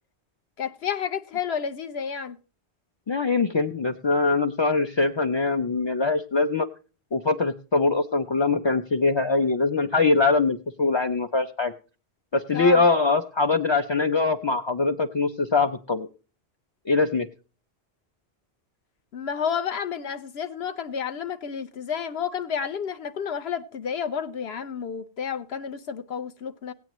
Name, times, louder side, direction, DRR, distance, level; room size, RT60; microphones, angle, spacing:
voice 1, 0.6-2.4 12.5-12.9 19.1-26.7, left 7 dB, 70° left, 1.0 m, -31 dB
voice 2, 3.1-6.7 7.1-11.7 12.3-16.1 16.9-17.3, left 3 dB, 40° left, 0.4 m, -23 dB
16.5 x 9.1 x 3.0 m
omnidirectional pair, 1.1 m